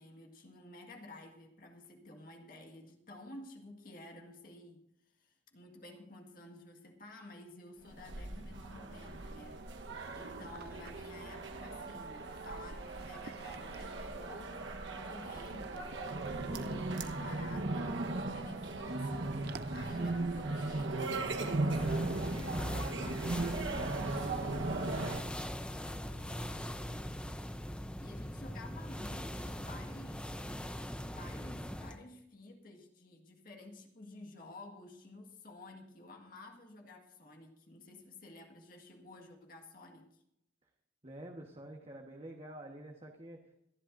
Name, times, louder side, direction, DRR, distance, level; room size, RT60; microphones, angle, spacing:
voice 1, 0.0-4.8 5.2-9.6 10.1-14.6 14.9-15.9 16.4-19.4 19.7-22.6 23.0-24.9 26.0-27.2 28.0-30.4 31.1-40.1, left 2 dB, 50° left, 2 dB, 1.8 m, -52 dB
sound 1, 7.9-25.2, right 2 dB, 85° right, 1.2 m, -37 dB
sound 2, 9.0-20.1, right 5 dB, 55° right, 0.5 m, -50 dB
sound 3, 21.7-32.0, equal, 5° left, 0.7 m, -41 dB
voice 2, 41.0-43.5, right 1 dB, 30° right, 0 dB, 1.4 m, -48 dB
26.0 x 11.0 x 2.6 m, 0.80 s
head